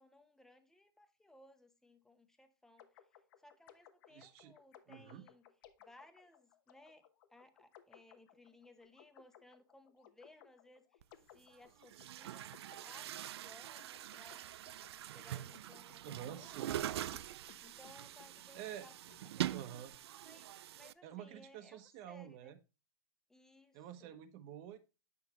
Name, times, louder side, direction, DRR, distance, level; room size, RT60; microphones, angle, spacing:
voice 1, 0.0-2.9 3.4-5.5 5.8-11.0 11.3-12.5 12.8-14.5 15.0-17.0 17.6-19.0 19.2-19.7 20.2-22.5 23.3-24.1, left 1 dB, 5° left, 0.8 m, -62 dB
sound 1, 2.8-19.5, left 10 dB, 60° left, 1.1 m, -63 dB
voice 2, 4.1-4.5 4.9-5.2 16.0-16.8 18.5-18.9 19.5-19.9 21.0-22.6 23.7-24.8, right 10 dB, 45° right, 1.0 m, -49 dB
Chatter / Gurgling / Tap, 11.0-11.1 11.8-20.9, right 12 dB, 85° right, 0.4 m, -44 dB
8.4 x 6.0 x 3.0 m
supercardioid pair, 140°, 13 cm